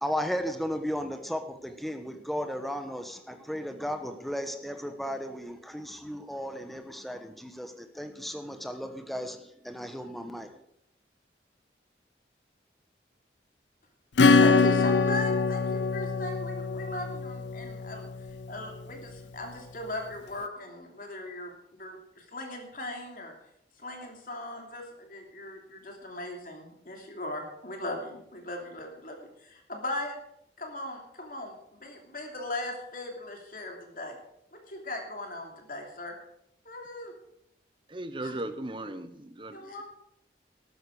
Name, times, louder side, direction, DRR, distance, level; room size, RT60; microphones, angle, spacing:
voice 1, 0.0-10.6, equal, ahead, 7 dB, 1.1 m, -35 dB
Acoustic guitar / Strum, 14.2-18.4, left 4 dB, 85° left, 0.6 m, -24 dB
voice 2, 14.2-23.3 23.8-30.2 30.6-34.2 34.5-36.1 36.6-37.1 38.2-38.3 39.5-39.8, left 1 dB, 50° left, 2 dB, 2.9 m, -38 dB
voice 3, 37.9-39.8, right 1 dB, 30° right, 10 dB, 1.0 m, -37 dB
13.5 x 12.0 x 4.9 m, 0.77 s
head